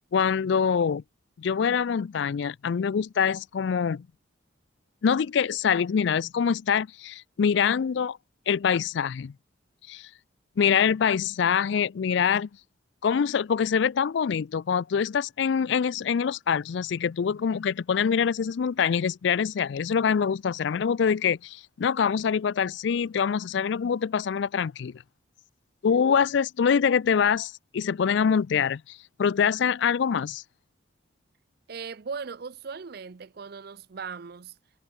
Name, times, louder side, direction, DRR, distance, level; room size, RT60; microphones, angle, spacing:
voice 1, 0.1-1.0 1.4-4.1 5.0-8.2 8.5-9.3 9.9-10.1 10.6-12.5 13.0-24.9 25.8-30.4, left 7 dB, 60° left, 0.4 m, -25 dB
voice 2, 31.7-34.5, right 5 dB, 50° right, 0.5 m, -38 dB
head